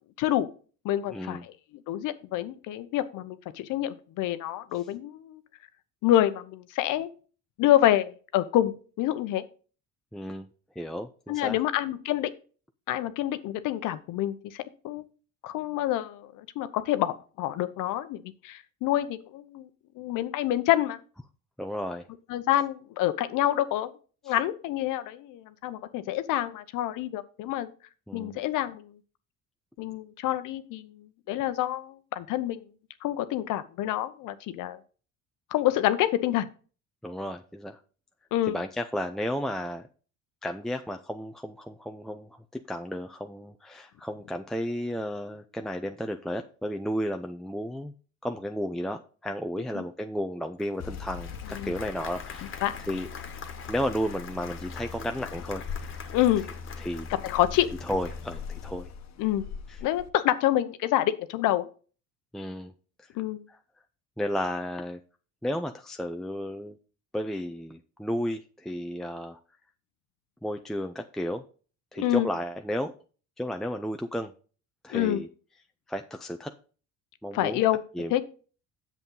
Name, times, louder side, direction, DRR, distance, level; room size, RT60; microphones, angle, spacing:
voice 1, 0.2-0.5 0.8-1.4 1.9-5.4 6.0-7.1 7.6-9.4 11.3-12.3 12.9-15.0 15.4-19.7 20.0-21.0 22.3-23.9 24.2-27.7 28.1-28.9 29.8-32.6 33.0-34.8 35.5-36.5 38.3-38.6 51.6-51.7 52.6-52.8 56.1-56.5 57.1-57.7 59.2-59.5 59.8-61.7 63.1-63.4 72.0-72.3 74.9-75.2 77.3-77.8 78.1-78.2, left 13 dB, 70° left, 12 dB, 0.9 m, -27 dB
voice 2, 1.1-1.4 4.7-4.9 10.1-10.5 10.8-11.6 21.6-22.1 24.3-24.4 28.1-28.4 37.0-37.8 38.5-39.9 40.4-47.9 48.2-52.6 52.9-53.1 53.7-56.0 56.8-57.1 57.8-58.9 59.7-59.8 62.3-62.7 63.0-63.1 63.5-63.6 64.2-65.0 65.4-66.8 67.1-69.4 70.4-71.4 71.9-72.9 73.4-74.3 74.8-75.3 75.9-76.5 77.2-77.6 77.9-78.1, equal, ahead, 5 dB, 0.6 m, -33 dB
Applause, 50.6-58.5, left 6 dB, 40° left, 1.6 m, -45 dB
sound 1, 50.8-60.1, left 6 dB, 55° left, 1.1 m, -40 dB
8.2 x 7.3 x 3.9 m, 0.38 s
cardioid pair, 100°, 32 cm